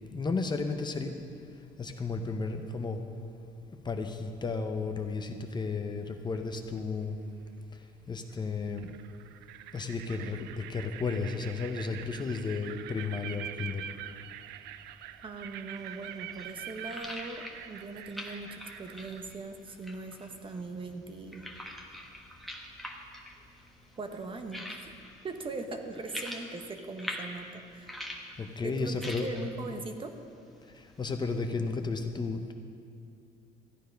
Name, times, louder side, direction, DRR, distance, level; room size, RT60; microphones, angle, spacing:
voice 1, 0.1-1.1 1.8-3.0 3.8-7.2 8.1-8.9 9.7-13.8 28.4-29.3 31.0-32.5, left 4 dB, 25° left, 6 dB, 0.8 m, -33 dB
sound 1, 6.3-6.8 8.3-8.4 8.8-19.3, right 11 dB, 85° right, 0.4 m, -45 dB
voice 2, 15.2-21.5 24.0-24.8 25.2-28.0 28.6-30.1, right 3 dB, 30° right, 6 dB, 0.9 m, -40 dB
sound 2, 15.8-31.5, left 1 dB, ahead, 1.3 m, -46 dB
13.5 x 9.3 x 5.2 m, 2.4 s
cardioid pair, 110°, 17 cm